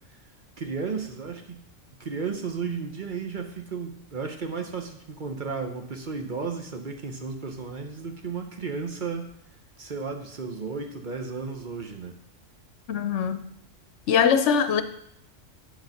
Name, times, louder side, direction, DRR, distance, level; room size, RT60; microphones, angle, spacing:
voice 1, 0.6-1.6 2.0-9.3 9.8-12.2, right 5 dB, 45° right, 0.9 m, -33 dB
voice 2, 12.9-13.4 14.1-14.8, left 7 dB, 70° left, 1.0 m, -22 dB
11.0 x 4.2 x 5.8 m
omnidirectional pair, 1.3 m